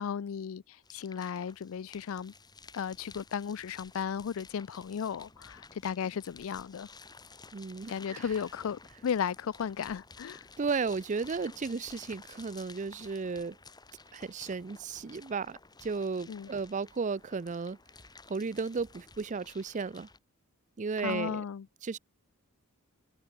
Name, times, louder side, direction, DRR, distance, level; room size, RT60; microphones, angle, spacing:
voice 1, 0.0-2.3 2.7-6.9 7.9-10.5 16.3-16.5 21.0-21.7, left 7 dB, 70° left, 0.4 m, -35 dB
sound 1, 0.8-20.2, left 4 dB, 20° left, 2.0 m, -53 dB
voice 2, 7.5-8.2 10.6-13.6 14.1-17.8 18.3-20.1 20.8-21.4 21.8-22.0, right 4 dB, 35° right, 0.5 m, -34 dB
head